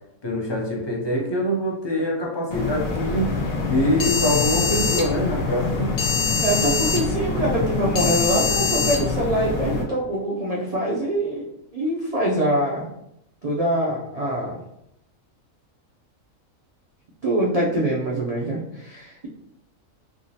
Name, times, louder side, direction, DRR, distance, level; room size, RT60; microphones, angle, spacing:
voice 1, 0.2-3.3 3.7-5.9, equal, 35° left, -2 dB, 0.4 m, -24 dB
sound 1, 2.5-9.8, left 4 dB, 90° left, 1.2 m, -24 dB
voice 2, 6.4-11.5 11.7-12.9 13.4-14.6 17.2-19.3, right 1 dB, 65° right, -4 dB, 0.3 m, -24 dB
3.5 x 2.9 x 2.7 m, 0.79 s
omnidirectional pair, 1.4 m